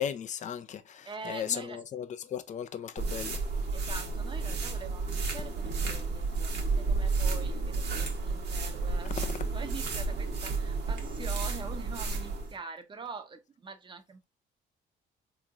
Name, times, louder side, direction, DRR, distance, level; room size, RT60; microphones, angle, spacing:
voice 1, 0.0-3.4 9.1-9.5, left 9 dB, 40° left, 0.4 m, -36 dB
voice 2, 1.0-1.8 3.7-14.3, right 4 dB, 25° right, 0.7 m, -44 dB
sound 1, 3.0-12.5, right 3 dB, 60° right, 1.0 m, -31 dB
3.6 x 3.0 x 2.3 m
cardioid pair, 110°, 19 cm